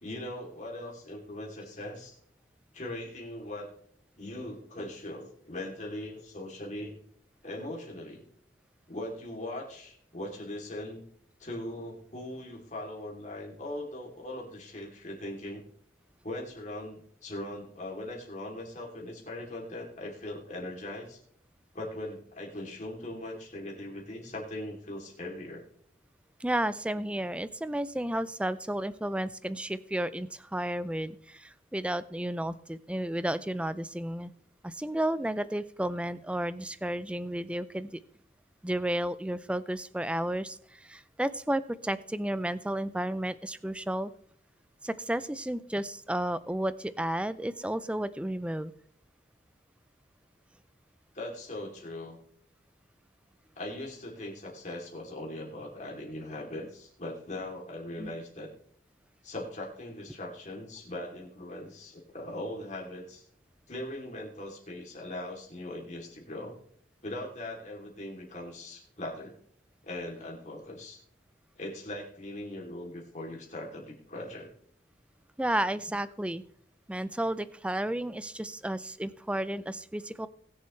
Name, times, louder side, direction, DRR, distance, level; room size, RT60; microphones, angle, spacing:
voice 1, 0.0-2.2 2.7-3.7 4.2-7.0 7.4-8.3 8.9-11.0 11.4-15.6 16.2-21.2 21.7-25.6 51.1-52.2 53.6-58.5 59.2-63.2 63.7-66.6 67.0-69.4 69.8-71.0 71.6-74.5, left 1 dB, 40° left, -1 dB, 2.9 m, -40 dB
voice 2, 26.4-34.3 34.6-38.0 38.6-44.1 44.8-48.7 58.0-58.1 75.4-76.4 76.9-80.3, right 1 dB, 5° right, 15 dB, 0.4 m, -32 dB
20.5 x 7.2 x 3.2 m, 0.64 s
head